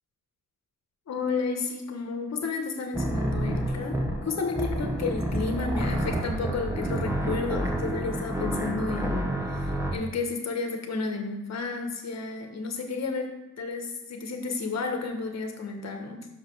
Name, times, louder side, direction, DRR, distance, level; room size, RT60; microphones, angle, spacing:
voice 1, 1.1-4.0 4.2-16.3, left 4 dB, 55° left, 4 dB, 1.3 m, -32 dB
sound 1, 2.9-9.9, right 1 dB, 10° right, 0.9 m, -29 dB
6.2 x 5.0 x 6.2 m, 0.93 s
wide cardioid pair, 145°, 31 cm